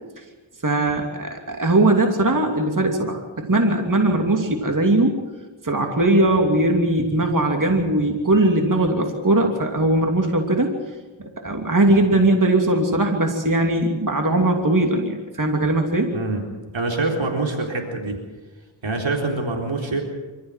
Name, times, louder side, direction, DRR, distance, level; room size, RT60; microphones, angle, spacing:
voice 1, 0.6-5.1 5.6-10.7 11.2-16.1, right 2 dB, 40° right, 3 dB, 2.9 m, -20 dB
voice 2, 16.1-16.4 16.7-18.2 18.8-20.0, right 2 dB, 70° right, 1 dB, 4.0 m, -25 dB
26.0 x 14.0 x 7.5 m, 1.3 s
cardioid pair, 50°, 47 cm